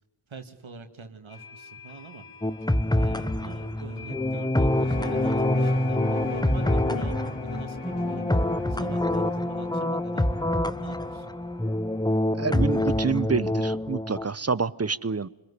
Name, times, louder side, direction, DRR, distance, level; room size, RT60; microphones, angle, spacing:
voice 1, 0.3-2.2 3.0-8.3 8.7-11.3, right 4 dB, 70° right, 7 dB, 2.3 m, -44 dB
sound 1, 1.3-12.9, left 7 dB, 85° left, 5.1 m, -48 dB
sound 2, 2.4-14.3, left 1 dB, 10° left, 1.0 m, -26 dB
sound 3, 4.6-13.3, left 3 dB, 60° left, 2.7 m, -36 dB
voice 2, 12.3-15.3, right 5 dB, 30° right, 18 dB, 0.9 m, -27 dB
25.5 x 21.0 x 9.9 m, 1.1 s
cardioid pair, 50°, 50 cm